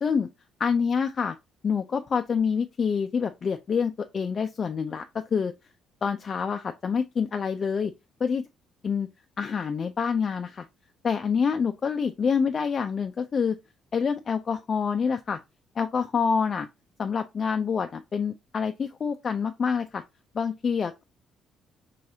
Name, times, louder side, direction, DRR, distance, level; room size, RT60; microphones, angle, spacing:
voice 1, 0.6-1.4 1.6-5.5 6.0-7.9 8.2-8.4 8.8-9.1 9.4-10.7 11.0-13.6 13.9-15.4 15.8-16.7 17.0-20.0 20.3-21.0, left 6 dB, 45° left, 0.3 m, -27 dB
3.7 x 3.3 x 2.7 m
hypercardioid pair, 60°, 0 cm